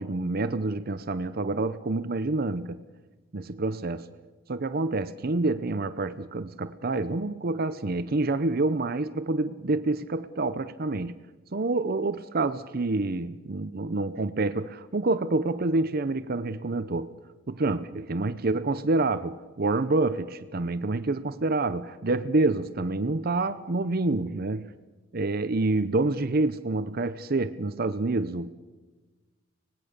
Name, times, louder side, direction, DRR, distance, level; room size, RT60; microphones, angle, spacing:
voice 1, 0.0-2.8 3.3-4.1 4.5-11.2 11.5-17.1 17.5-24.7 25.1-28.5, right 2 dB, 50° right, 0.7 m, -27 dB
25.0 x 19.5 x 6.7 m
head